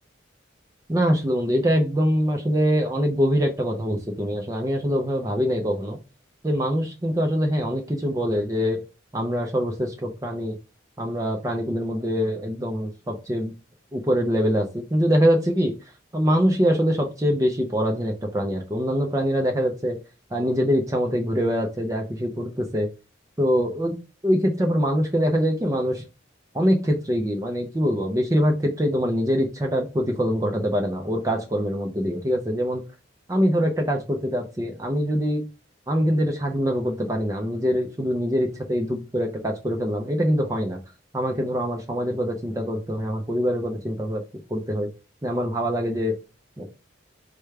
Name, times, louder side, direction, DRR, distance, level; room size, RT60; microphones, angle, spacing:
voice 1, 0.9-6.0 6.4-8.8 9.1-10.6 11.0-13.5 13.9-15.7 16.1-20.0 20.3-22.9 23.4-23.9 24.2-26.0 26.5-32.8 33.3-35.4 35.9-40.8 41.1-44.2 44.5-44.9 45.2-46.1 46.6-46.7, equal, 15° right, 2 dB, 0.5 m, -24 dB
4.9 x 2.2 x 4.6 m, 0.30 s
head